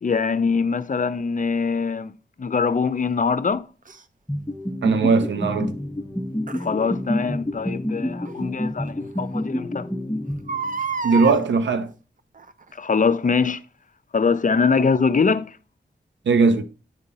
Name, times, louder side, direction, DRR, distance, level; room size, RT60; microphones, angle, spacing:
voice 1, 0.0-2.1 2.4-3.7 6.6-9.9 12.8-13.6 14.1-15.6, left 5 dB, 45° left, 0.6 m, -22 dB
Crying sobbing, 3.9-4.0 6.5-6.7 8.2-8.3 8.9-9.0 9.2-9.3 10.3-11.4 12.4-12.7 13.3-13.4, right 5 dB, 45° right, 0.8 m, -29 dB
sound 1, 4.3-11.0, left 1 dB, 10° left, 0.9 m, -29 dB
voice 2, 4.8-5.8 11.0-11.9 16.3-16.6, right 4 dB, 85° right, 0.8 m, -19 dB
9.7 x 3.7 x 4.2 m
cardioid pair, 45°, 18 cm